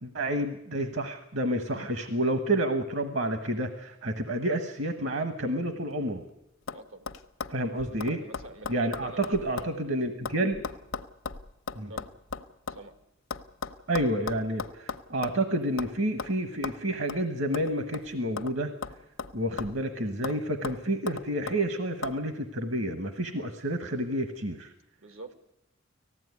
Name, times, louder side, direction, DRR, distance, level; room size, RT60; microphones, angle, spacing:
voice 1, 0.0-6.2 7.5-8.2 8.7-10.6 11.8-11.9 13.9-18.7 19.3-24.7, right 1 dB, 60° right, 8 dB, 1.3 m, -29 dB
sound 1, 5.9-6.3 6.7-6.8 7.1-9.8 10.0-12.8 13.3-15.4 15.8-15.9 16.2-16.3 16.6-16.8 17.1-17.2 17.5-18.6 18.8-19.9 20.2-20.4 20.6-21.6 22.0-22.2, left 5 dB, 90° left, 1.0 m, -37 dB
voice 2, 6.7-7.1 8.0-9.3 9.5-9.7 11.9-12.1 12.7-12.9 25.0-25.3, right 2 dB, 90° right, 9 dB, 1.8 m, -45 dB
19.0 x 15.0 x 9.5 m, 0.85 s
head